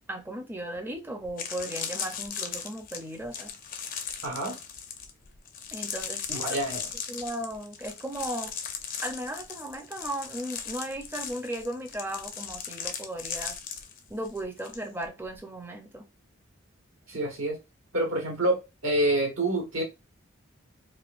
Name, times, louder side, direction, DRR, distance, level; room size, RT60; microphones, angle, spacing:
voice 1, 0.1-3.5 5.7-6.6 7.1-8.5 9.0-13.6 14.1-16.1, right 1 dB, 10° right, 0.5 m, -36 dB
sound 1, 0.8-0.9 1.2-14.8 15.0-15.4, left 7 dB, 40° left, 0.5 m, -37 dB
voice 2, 4.2-4.6 6.3-6.9 17.1-17.6 17.9-19.8, right 1 dB, 80° right, 1.3 m, -27 dB
4.2 x 2.5 x 2.4 m
head